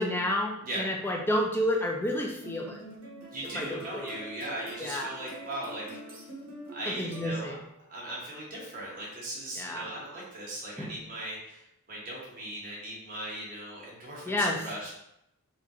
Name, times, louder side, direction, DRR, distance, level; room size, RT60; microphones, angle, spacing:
voice 1, 0.0-2.8 3.5-4.2 4.8-5.1 7.0-7.6 9.6-9.9 10.8-10.9 14.3-14.6, left 1 dB, 10° left, 0 dB, 0.4 m, -30 dB
sound 1, 2.4-7.8, right 1 dB, 60° right, 1.2 m, -45 dB
voice 2, 3.3-5.9 6.7-7.6 7.9-14.9, right 1 dB, 40° right, -5 dB, 1.2 m, -38 dB
3.6 x 2.5 x 2.9 m, 0.81 s
head